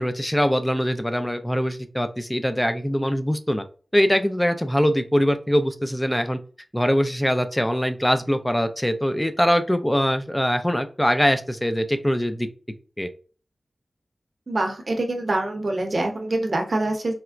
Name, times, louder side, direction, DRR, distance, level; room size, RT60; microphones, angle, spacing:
voice 1, 0.0-3.6 3.9-6.4 6.7-12.5 13.0-13.1, equal, 10° left, 9 dB, 0.4 m, -22 dB
voice 2, 14.5-17.1, right 2 dB, 50° right, 3 dB, 0.7 m, -25 dB
4.3 x 2.0 x 2.4 m, 0.39 s
wide cardioid pair, 90°, 0 cm